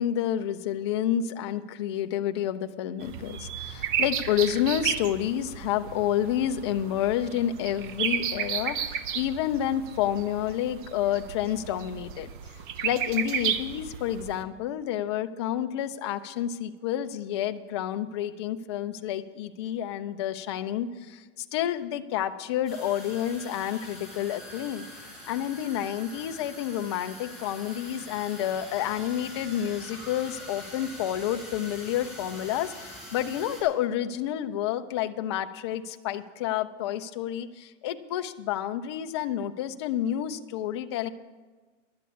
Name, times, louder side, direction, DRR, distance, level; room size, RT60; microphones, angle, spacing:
voice 1, 0.0-12.3 12.8-24.8 25.3-41.1, left 11 dB, 25° left, 8 dB, 0.3 m, -29 dB
sound 1, 3.0-14.4, right 8 dB, 45° right, 0.8 m, -33 dB
sound 2, 22.7-33.6, left 1 dB, ahead, 4.5 m, -44 dB
11.0 x 8.2 x 8.4 m, 1.3 s
hypercardioid pair, 145°, 37 cm